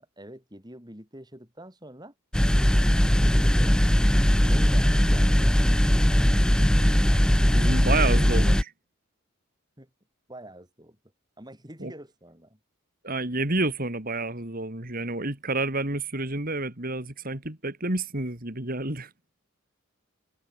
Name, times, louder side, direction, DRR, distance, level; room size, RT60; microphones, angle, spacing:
voice 1, 0.0-2.1 2.6-3.8 4.5-6.3 7.7-8.6 9.8-9.9 10.3-11.0 11.4-12.6, right 1 dB, 20° right, 7.7 m, -46 dB
sound 1, 2.3-8.6, equal, 5° left, 0.4 m, -20 dB
voice 2, 7.5-8.6 11.8-11.9 13.0-19.1, right 2 dB, 40° right, 3.0 m, -29 dB
head